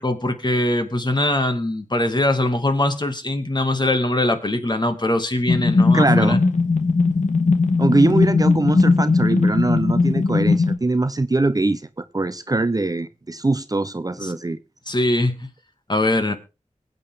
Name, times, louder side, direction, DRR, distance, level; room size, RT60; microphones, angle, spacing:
voice 1, 0.0-6.4 14.2-14.3 14.9-15.4 15.9-16.4, left 1 dB, 35° left, 2.2 m, -22 dB
sound 1, 5.5-10.8, left 3 dB, 75° left, 2.0 m, -18 dB
voice 2, 5.9-6.4 7.8-11.8 12.1-14.6, right 2 dB, 30° right, 0.7 m, -22 dB
22.0 x 8.5 x 3.7 m
wide cardioid pair, 55°, 13 cm